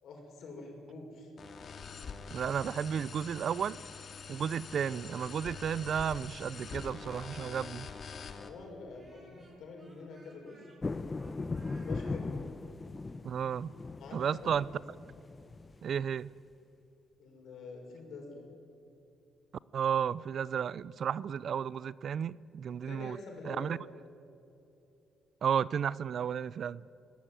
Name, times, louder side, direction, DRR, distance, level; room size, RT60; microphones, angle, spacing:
voice 1, 0.0-1.3 8.3-10.7 11.6-12.4 14.0-14.8 17.2-18.4 22.9-23.9, left 3 dB, 70° left, 6.1 m, -47 dB
sound 1, 1.4-8.5, left 5 dB, 50° left, 2.2 m, -45 dB
voice 2, 2.3-3.8 4.3-7.9 13.2-13.7 14.1-14.7 15.8-16.3 19.7-23.2 23.5-23.8 25.4-26.8, right 8 dB, 60° right, 0.4 m, -33 dB
Speech, 5.4-8.3 8.9-12.2, right 2 dB, 30° right, 6.5 m, -62 dB
sound 2, 10.8-16.2, left 3 dB, 25° left, 0.8 m, -39 dB
24.5 x 18.0 x 9.0 m
cardioid pair, 90°, 0 cm